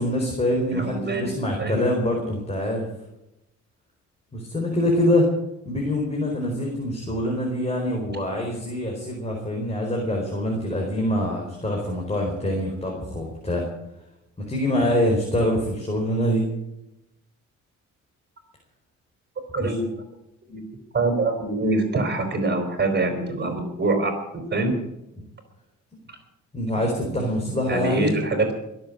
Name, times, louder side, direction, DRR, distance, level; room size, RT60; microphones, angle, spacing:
voice 1, 0.0-2.9 4.3-5.3 5.6-13.7 14.4-16.5 19.6-19.7 26.5-28.1, left 1 dB, 20° left, 0 dB, 4.6 m, -25 dB
voice 2, 0.7-1.3 1.6-1.8 19.5-19.8 20.5-20.6 20.9-24.1 24.5-24.7 27.1-27.2 27.7-28.5, right 3 dB, 35° right, 5 dB, 4.5 m, -24 dB
21.5 x 7.8 x 8.6 m, 0.90 s
cardioid pair, 90°, 30 cm